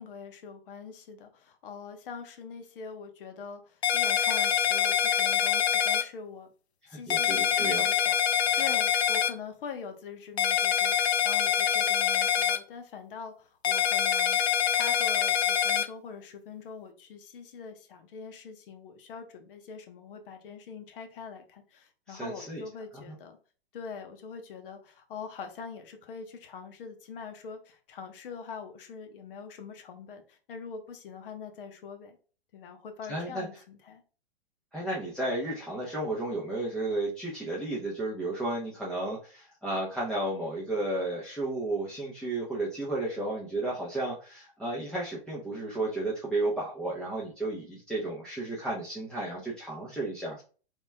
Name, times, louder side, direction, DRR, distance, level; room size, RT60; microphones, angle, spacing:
voice 1, 0.0-6.5 6.9-10.9 11.2-14.4 14.7-23.4 23.7-32.2 32.5-34.0, left 5 dB, 55° left, 6 dB, 1.1 m, -43 dB
sound 1, 3.8-6.0 7.1-9.3 10.4-12.6 13.6-15.9, left 9 dB, 85° left, 0.6 m, -25 dB
voice 2, 6.9-7.8 22.1-22.6 23.1-23.2 33.1-33.5 34.7-50.4, right 2 dB, ahead, -7 dB, 0.8 m, -33 dB
4.0 x 3.5 x 2.2 m, 0.38 s
hypercardioid pair, 125°, 32 cm